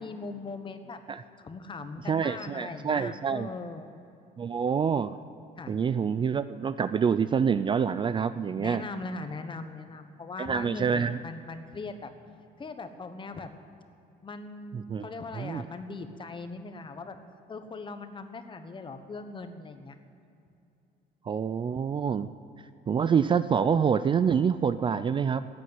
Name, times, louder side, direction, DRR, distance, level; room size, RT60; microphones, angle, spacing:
voice 1, 0.0-1.0 1.4-3.9 5.6-5.8 8.6-12.1 12.6-13.5 14.2-17.2 17.5-19.9, left 3 dB, 30° left, 8 dB, 1.1 m, -40 dB
voice 2, 2.1-3.5 4.4-5.2 5.7-8.8 10.4-11.2 14.7-15.1 15.4-15.6 21.3-22.3 22.9-25.5, right 6 dB, 30° right, 13 dB, 0.4 m, -26 dB
14.5 x 8.5 x 9.4 m, 2.7 s
cardioid pair, 110°, 17 cm